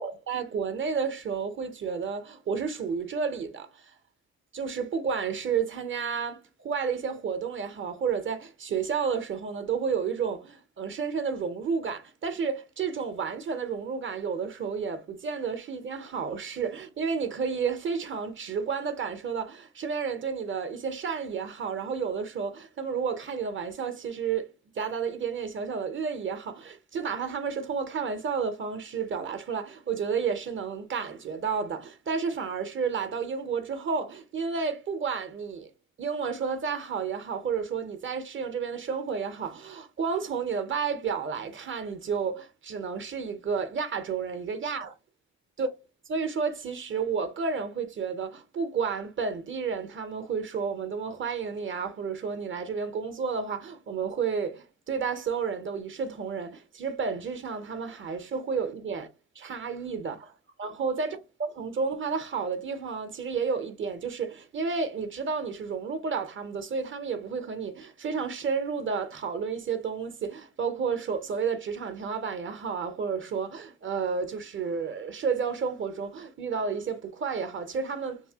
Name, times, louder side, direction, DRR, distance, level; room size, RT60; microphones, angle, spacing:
voice 1, 0.0-3.9 4.5-24.5 24.8-35.7 36.0-44.9 45.6-45.7 46.1-59.1 59.4-60.3 60.6-61.2 61.6-78.2, right 6 dB, 40° right, 0.6 m, -31 dB
2.7 x 2.7 x 2.7 m
cardioid pair, 90°, 30 cm